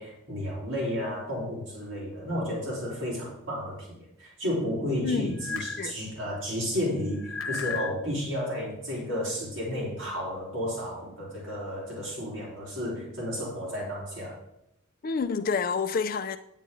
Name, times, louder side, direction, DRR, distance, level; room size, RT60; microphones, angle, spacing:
voice 1, 0.0-3.9 4.2-14.4, equal, 65° right, 4.0 m, -32 dB
voice 2, 5.0-5.4 5.8-6.0 15.0-16.4, left 5 dB, 45° left, 0.4 m, -28 dB
sound 1, 5.4-5.8 7.1-8.0, left 5 dB, 70° left, 1.0 m, -33 dB
9.7 x 9.1 x 3.8 m
head